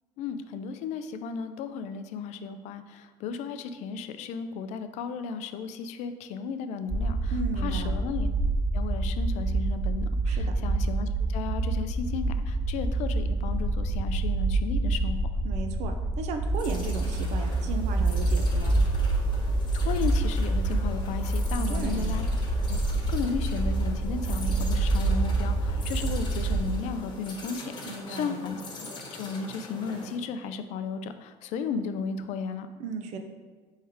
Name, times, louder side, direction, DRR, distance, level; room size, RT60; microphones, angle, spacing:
voice 1, 0.2-8.3 8.7-15.2 19.7-22.3 22.7-28.6 28.9-32.7, left 5 dB, 75° left, 10 dB, 0.4 m, -34 dB
sound 1, 6.9-26.7, right 2 dB, 10° right, 0.4 m, -27 dB
voice 2, 7.3-7.9 10.3-10.5 15.4-18.8 21.5-22.1 27.8-28.4 32.8-33.2, right 5 dB, 70° right, 5 dB, 0.6 m, -35 dB
sound 2, 16.5-30.2, left 2 dB, 40° left, 1.1 m, -43 dB
4.5 x 3.2 x 3.5 m, 1.4 s
cardioid pair, 95°, 12 cm